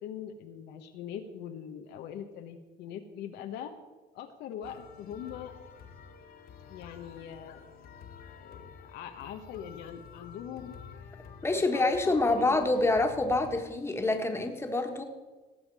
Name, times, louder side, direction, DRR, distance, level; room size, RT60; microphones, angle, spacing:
voice 1, 0.0-3.7 4.1-5.5 6.6-7.6 8.4-10.8 11.5-13.0, left 9 dB, 85° left, 5 dB, 1.1 m, -42 dB
sound 1, 4.6-13.6, left 6 dB, 65° left, 1.9 m, -49 dB
voice 2, 11.4-15.0, left 2 dB, 15° left, 5 dB, 1.6 m, -27 dB
18.0 x 7.2 x 4.8 m, 1.2 s
cardioid pair, 110°, 17 cm